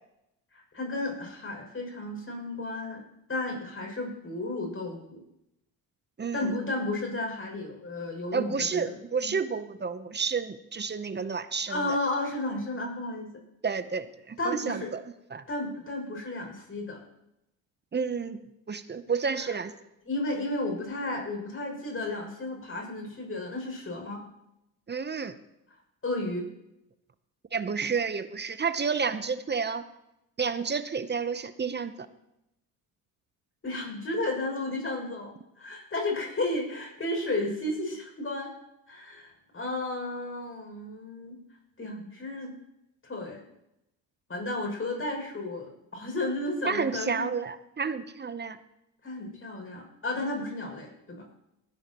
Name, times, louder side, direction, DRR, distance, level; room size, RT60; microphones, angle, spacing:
voice 1, 0.5-3.0 3.3-5.2 6.3-8.9 9.2-9.3 11.7-13.3 14.4-14.9 15.5-17.0 19.4-19.5 20.0-24.2 26.0-26.5 33.6-38.5 38.9-41.4 41.8-42.5 43.0-43.4 44.3-47.3 49.0-51.3, left 2 dB, 30° left, 1 dB, 6.5 m, -33 dB
voice 2, 6.2-6.5 8.3-12.0 13.6-15.0 15.3-15.4 17.9-18.4 18.7-19.7 24.9-25.3 27.5-29.8 30.4-32.1 46.7-48.6, right 5 dB, 25° right, 13 dB, 0.8 m, -30 dB
19.5 x 12.5 x 3.0 m, 0.86 s
supercardioid pair, 65°, 40 cm